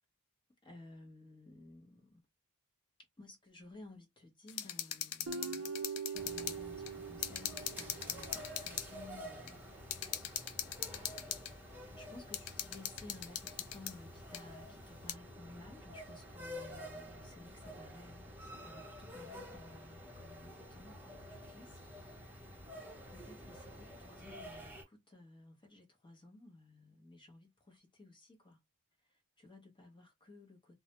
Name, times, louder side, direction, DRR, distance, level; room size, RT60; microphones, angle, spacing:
voice 1, 0.6-2.2 3.2-9.6 10.8-22.6 23.1-28.6 29.0-30.8, left 2 dB, 20° left, 0.8 m, -56 dB
sound 1, 4.5-6.6 6.9-7.0 7.2-8.9 9.5-9.6 9.9-11.5 12.3-13.9 14.3-14.4 15.1-15.2, left 10 dB, 70° left, 0.4 m, -40 dB
Guitar, 5.3-8.6, right 5 dB, 70° right, 0.5 m, -43 dB
sound 2, 6.1-24.8, equal, 10° right, 0.7 m, -50 dB
2.2 x 2.1 x 2.8 m
head